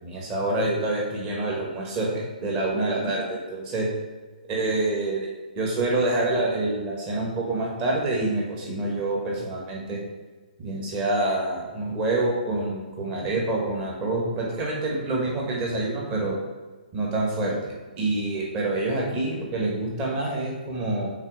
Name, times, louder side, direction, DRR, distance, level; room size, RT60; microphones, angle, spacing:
voice 1, 0.0-3.9 4.5-5.3 5.5-10.0 10.6-16.4 16.9-21.1, right 2 dB, 20° right, -3 dB, 1.3 m, -27 dB
5.6 x 4.0 x 4.8 m, 1.3 s
hypercardioid pair, 165°, 5 cm